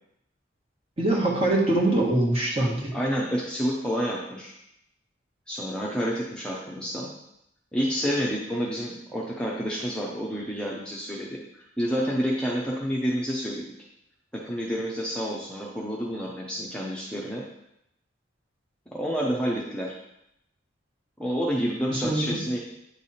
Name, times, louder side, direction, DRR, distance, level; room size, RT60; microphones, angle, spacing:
voice 1, 1.0-2.9 21.9-22.4, right 1 dB, 30° right, -3 dB, 1.5 m, -23 dB
voice 2, 2.9-4.5 5.5-7.1 7.7-13.6 14.3-17.4 18.9-19.9 21.2-22.6, equal, 5° left, -4 dB, 0.7 m, -29 dB
8.7 x 3.4 x 4.2 m, 0.80 s
head